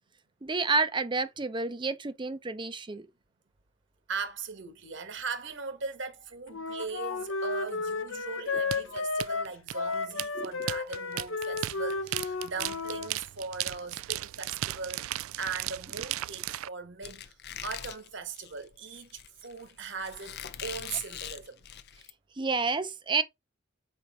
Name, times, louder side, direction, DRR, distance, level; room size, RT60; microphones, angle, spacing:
voice 1, 0.4-3.1 10.3-10.5 22.4-23.2, right 4 dB, 25° right, 0.6 m, -29 dB
voice 2, 4.1-17.4 17.6-21.6, right 5 dB, 60° right, 1.4 m, -39 dB
Wind instrument woodwind instrument, 6.5-13.1, left 4 dB, 70° left, 1.0 m, -33 dB
sound 1, 8.7-16.7, right 14 dB, 80° right, 0.3 m, -35 dB
Squeak, 17.0-22.1, left 9 dB, 50° left, 0.6 m, -43 dB
6.9 x 4.5 x 3.7 m
head